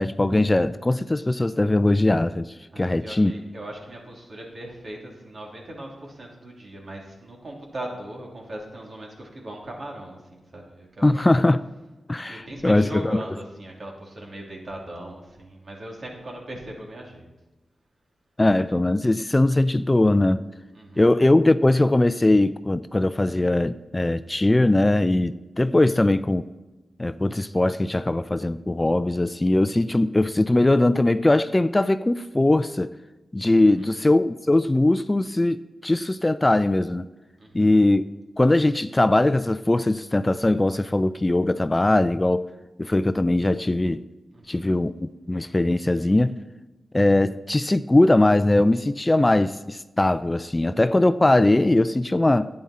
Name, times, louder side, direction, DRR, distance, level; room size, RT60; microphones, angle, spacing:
voice 1, 0.0-3.3 11.0-11.7 12.1-13.2 18.4-20.4 21.0-26.5 27.0-32.9 33.3-37.1 37.5-38.0 38.4-42.5 42.8-44.0 44.5-46.4 46.9-52.5, left 2 dB, 25° left, 0.4 m, -20 dB
voice 2, 2.7-11.2 12.2-17.3 20.7-21.1 33.6-33.9 37.4-37.7 44.3-44.7, right 1 dB, 60° right, 2.9 m, -39 dB
10.5 x 8.8 x 4.3 m
cardioid pair, 50°, 0 cm